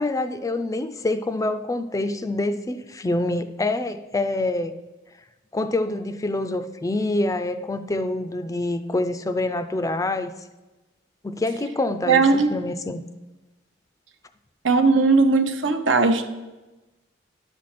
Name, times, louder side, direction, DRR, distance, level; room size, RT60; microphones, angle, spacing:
voice 1, 0.0-4.7 5.5-10.3 11.2-12.2 12.5-13.0, left 2 dB, 20° left, 11 dB, 0.4 m, -26 dB
voice 2, 12.1-12.5 14.6-16.2, right 4 dB, 80° right, 7 dB, 0.8 m, -18 dB
11.0 x 6.4 x 4.2 m, 1.1 s
head